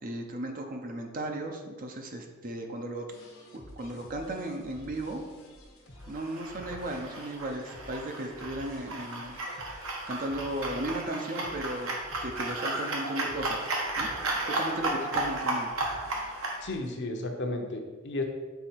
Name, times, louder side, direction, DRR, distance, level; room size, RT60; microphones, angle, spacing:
voice 1, 0.0-3.1 3.5-5.2 6.1-9.4 10.1-13.7 14.0-14.1 14.3-15.7, right 1 dB, 40° right, 3 dB, 0.7 m, -36 dB
sound 1, 3.1-16.9, left 1 dB, 80° left, 1.2 m, -51 dB
sound 2, 6.1-16.6, right 2 dB, 70° right, 1.3 m, -34 dB
voice 2, 16.6-18.2, left 2 dB, 55° left, 3 dB, 0.8 m, -33 dB
6.9 x 4.0 x 4.5 m, 1.4 s
head